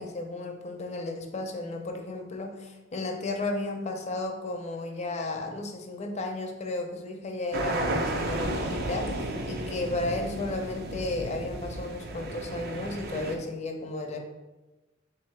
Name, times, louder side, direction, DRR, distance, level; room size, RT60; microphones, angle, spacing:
voice 1, 0.0-14.2, left 2 dB, 35° left, 3 dB, 0.5 m, -34 dB
sound 1, 7.5-13.3, right 1 dB, 55° right, 0.5 m, -33 dB
3.6 x 2.8 x 4.4 m, 1.1 s
head